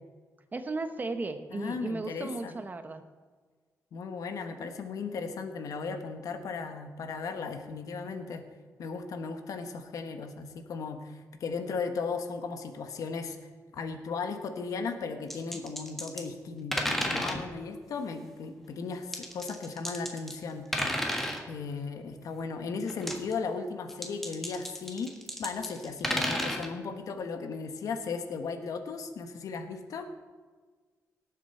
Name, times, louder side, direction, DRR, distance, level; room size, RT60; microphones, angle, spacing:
voice 1, 0.5-3.0 15.5-15.6, right 3 dB, 30° right, 8 dB, 1.0 m, -35 dB
voice 2, 1.5-2.5 3.9-8.4 8.8-13.4 13.7-20.9 21.5-25.1 25.4-30.1, left 4 dB, 75° left, 7 dB, 1.2 m, -36 dB
sound 1, 15.3-16.3 16.7-17.5 19.1-20.4 20.7-21.4 22.9-23.3 23.9-26.7, equal, 5° left, 1.6 m, -32 dB
18.0 x 7.5 x 4.4 m, 1.4 s
cardioid pair, 105°, 6 cm